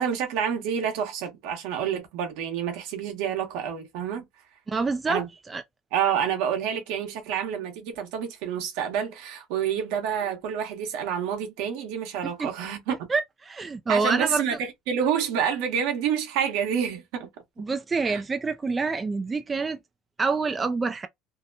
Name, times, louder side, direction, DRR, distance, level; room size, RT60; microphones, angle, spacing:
voice 1, 0.0-4.3 5.1-5.3 5.9-12.9 13.9-17.3 18.0-18.2, right 8 dB, 75° right, 1.0 m, -28 dB
voice 2, 4.7-5.6 12.4-12.5 13.1-14.4 17.6-19.8 20.2-21.1, right 4 dB, 20° right, 0.4 m, -27 dB
2.8 x 2.1 x 2.5 m
supercardioid pair, 105°, 0 cm